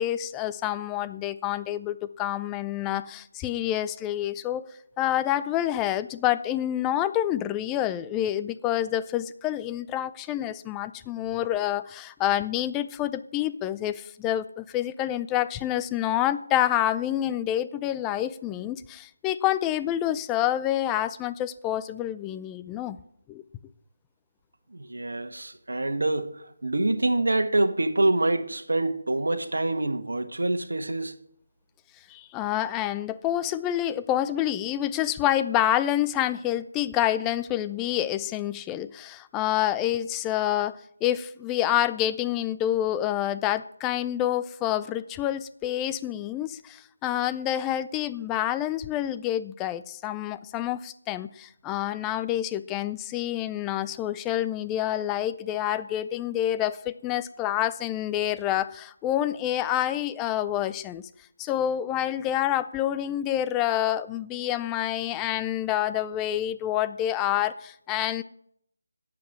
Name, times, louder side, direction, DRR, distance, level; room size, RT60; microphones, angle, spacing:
voice 1, 0.0-4.6 5.0-23.0 23.3-23.4 32.1-61.0 61.4-68.2, left 12 dB, 10° left, 0.4 m, -28 dB
voice 2, 24.7-31.1, right 2 dB, 80° right, 1.5 m, -26 dB
11.5 x 7.6 x 8.6 m
figure-of-eight pair, 165°, 0 cm